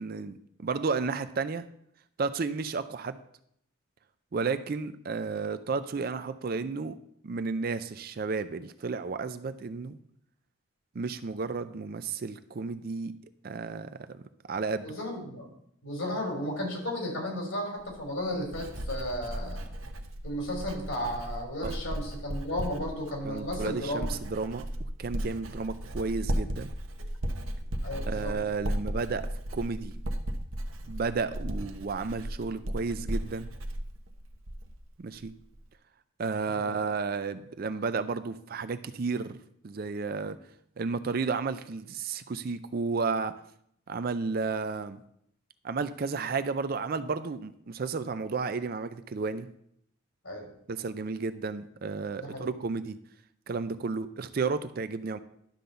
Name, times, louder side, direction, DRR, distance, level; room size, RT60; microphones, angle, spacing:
voice 1, 0.0-1.7 2.2-3.2 4.3-6.9 7.2-10.0 10.9-13.1 13.4-14.2 14.5-14.9 21.6-21.7 23.2-26.7 28.1-29.9 30.9-33.5 35.0-35.3 36.2-39.4 39.6-40.4 40.8-43.3 43.9-45.0 45.6-49.5 50.7-53.0 53.5-55.2, right 4 dB, 45° right, 12 dB, 0.4 m, -32 dB
voice 2, 14.8-15.5 15.8-19.6 20.2-24.0 27.8-28.3 36.6-36.7 50.2-50.5 52.2-52.5, left 1 dB, 75° left, 0 dB, 3.4 m, -34 dB
Writing, 17.8-34.8 35.1-35.6, right 1 dB, 80° right, 1.0 m, -35 dB
11.5 x 3.9 x 6.7 m, 0.70 s
head